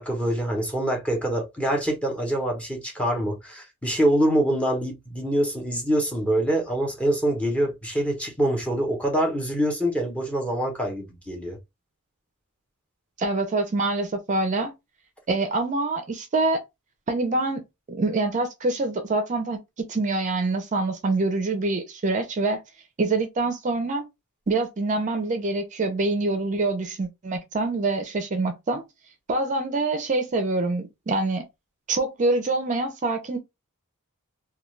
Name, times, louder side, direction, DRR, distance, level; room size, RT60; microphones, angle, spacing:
voice 1, 0.0-11.6, right 1 dB, 5° left, 0.7 m, -25 dB
voice 2, 13.2-14.7 15.3-16.6 17.1-17.6 17.9-22.6 23.0-24.0 24.5-28.8 29.3-31.4 31.9-33.4, right 2 dB, 35° right, 0.5 m, -25 dB
2.3 x 2.3 x 3.1 m
head